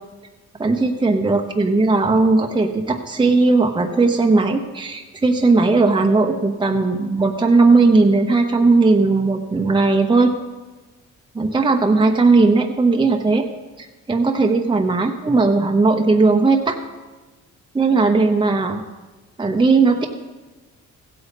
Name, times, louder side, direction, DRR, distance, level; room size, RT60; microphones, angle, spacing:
voice 1, 0.6-10.3 11.3-13.5 13.8-16.8 17.7-18.8 19.4-20.1, right 3 dB, 15° right, 3 dB, 0.9 m, -17 dB
15.0 x 8.3 x 5.3 m, 1.2 s
cardioid pair, 90°, 30 cm